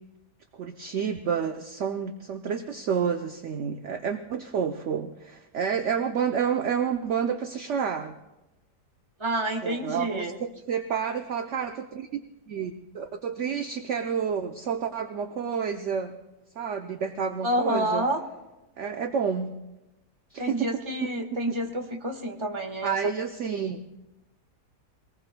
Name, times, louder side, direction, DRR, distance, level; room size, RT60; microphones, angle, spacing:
voice 1, 0.6-8.1 9.6-10.3 10.7-12.2 12.5-16.1 16.6-18.0 18.8-19.5 20.3-20.7 21.0-21.1 21.5-21.6 22.8-23.8, right 7 dB, 55° right, 6 dB, 0.9 m, -29 dB
voice 2, 9.2-10.4 17.4-18.2 20.4-22.9, right 1 dB, 20° right, 2 dB, 1.4 m, -28 dB
24.0 x 19.0 x 2.2 m, 1.0 s
omnidirectional pair, 1.8 m